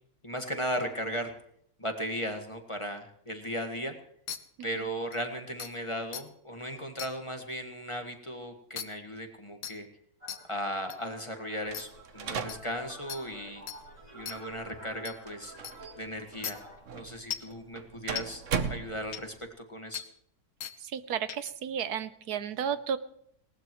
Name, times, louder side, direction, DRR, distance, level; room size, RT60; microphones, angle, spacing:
voice 1, 0.2-1.3 1.8-3.9 4.6-9.9 10.5-13.6 14.1-15.5 16.0-16.6 16.9-18.4 18.7-19.3 19.7-20.0, equal, 20° left, 5 dB, 1.5 m, -36 dB
sound 1, 4.3-4.4 5.1-5.2 5.6-5.7 6.1-6.2 7.0-7.1 8.8-8.9 9.6-9.7 10.3-10.4 10.9-11.0 11.7-11.8 12.5-12.6 13.1-13.2 13.7-13.8 14.3-14.4 15.0-15.1 15.6-15.7 16.4-16.5 17.3-17.5 18.2-18.3 19.1-19.2 19.9-20.0 20.6-20.7 21.3-21.5, left 9 dB, 65° left, 1.4 m, -37 dB
vocoder tuto, 10.2-16.8, right 1 dB, 20° right, 5.2 m, -50 dB
sound 2, 11.7-19.5, right 6 dB, 55° right, 1.2 m, -39 dB
voice 2, 20.8-23.0, right 8 dB, 75° right, 13 dB, 1.3 m, -33 dB
19.5 x 18.5 x 3.1 m, 0.68 s
omnidirectional pair, 1.7 m